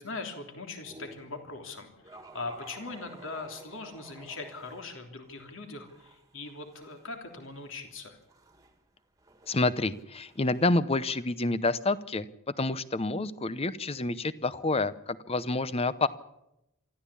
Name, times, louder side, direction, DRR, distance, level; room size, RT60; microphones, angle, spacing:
voice 1, 0.0-8.2, left 3 dB, 60° left, 4 dB, 3.3 m, -41 dB
sound 1, 0.7-1.3 2.0-4.8 5.3-10.8, right 2 dB, 15° right, 1.9 m, -53 dB
voice 2, 9.5-12.3 12.6-16.1, left 2 dB, 25° left, 16 dB, 0.7 m, -28 dB
24.5 x 14.0 x 8.5 m, 0.88 s
head